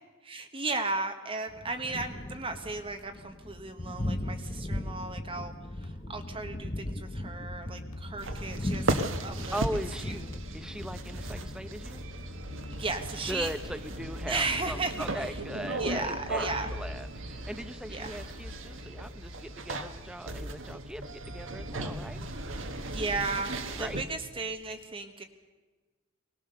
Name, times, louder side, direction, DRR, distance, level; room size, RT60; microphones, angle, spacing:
voice 1, 0.2-5.5 5.8-8.9 9.2-9.6 10.1-10.4 12.7-13.5 14.3-15.3 15.8-16.7 17.9-18.2 22.9-25.2, right 3 dB, 25° right, 6 dB, 1.1 m, -35 dB
Thunder, 1.5-16.8, left 1 dB, 25° left, 0.9 m, -40 dB
sound 1, 5.8-13.6, left 1 dB, 80° left, 1.5 m, -45 dB
sound 2, 8.2-24.0, right 2 dB, 65° right, 1.4 m, -36 dB
voice 2, 9.5-10.2 10.5-12.0 13.3-22.3 23.8-24.0, equal, 5° right, 12 dB, 0.7 m, -39 dB
21.5 x 19.0 x 6.8 m, 1.3 s
head